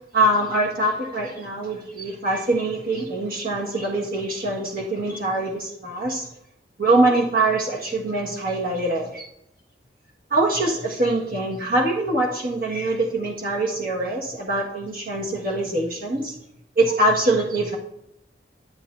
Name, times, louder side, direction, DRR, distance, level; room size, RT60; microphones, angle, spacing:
voice 1, 0.1-6.3 6.8-9.2 10.3-16.3 16.8-17.8, right 2 dB, 55° right, -3 dB, 1.6 m, -23 dB
11.0 x 7.6 x 2.6 m, 0.80 s
head